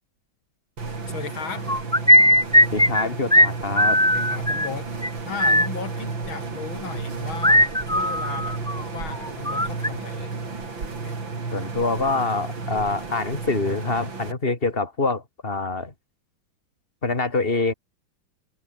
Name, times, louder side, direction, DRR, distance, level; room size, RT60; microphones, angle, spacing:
sound 1, 0.8-14.3, right 4 dB, 70° right, 4.7 m, -33 dB
voice 1, 1.1-1.7 4.1-10.4 11.0-11.2, left 6 dB, 75° left, 3.2 m, -36 dB
sound 2, 1.7-3.0 3.3-3.5 3.8-4.7 5.0-5.1 5.4-5.7 7.4-8.8 9.1-9.9, left 1 dB, 5° left, 0.5 m, -18 dB
voice 2, 2.7-4.0 11.5-15.9 17.0-17.7, left 3 dB, 25° left, 3.8 m, -25 dB
omnidirectional pair, 2.2 m